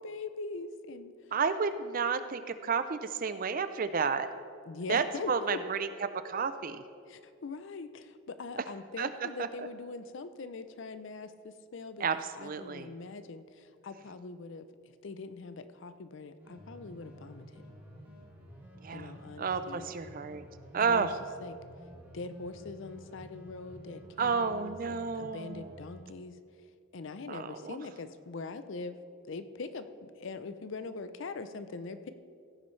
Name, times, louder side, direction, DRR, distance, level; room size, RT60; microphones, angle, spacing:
voice 1, 0.0-1.3 4.7-5.6 7.1-12.1 12.4-17.6 18.9-19.9 20.8-21.1 21.4-21.6 22.1-26.4 26.9-29.0 29.2-32.1, left 3 dB, 60° left, 12 dB, 0.5 m, -42 dB
voice 2, 1.3-4.3 4.9-5.9 6.3-6.8 9.0-9.1 9.4-9.5 12.0-12.9 18.8-20.4 20.7-21.1 24.2-25.7 27.3-27.8, right 5 dB, 40° right, 11 dB, 0.4 m, -31 dB
sound 1, 16.4-26.0, equal, 10° right, 2.2 m, -51 dB
15.5 x 9.5 x 3.2 m, 2.4 s
head